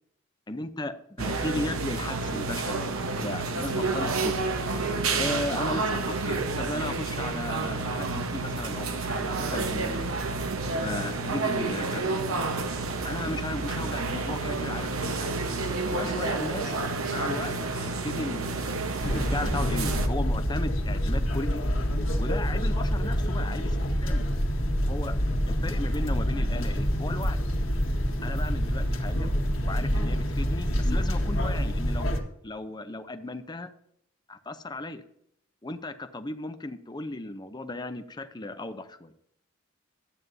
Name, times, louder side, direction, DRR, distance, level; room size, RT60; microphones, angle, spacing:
voice 1, 0.5-4.5 5.2-10.1 10.7-12.1 13.0-15.3 15.9-16.8 17.1-18.7 19.0-21.6 22.2-24.3 24.8-25.2 25.5-27.4 28.2-29.3 29.6-32.2 32.4-33.7 34.3-35.0 35.6-39.1, left 2 dB, 20° left, 9 dB, 0.6 m, -36 dB
sound 1, 1.2-20.1, right 3 dB, 80° right, 1.0 m, -30 dB
sound 2, 19.0-32.2, equal, 65° left, 1.7 m, -27 dB
13.0 x 9.1 x 2.7 m, 0.72 s
head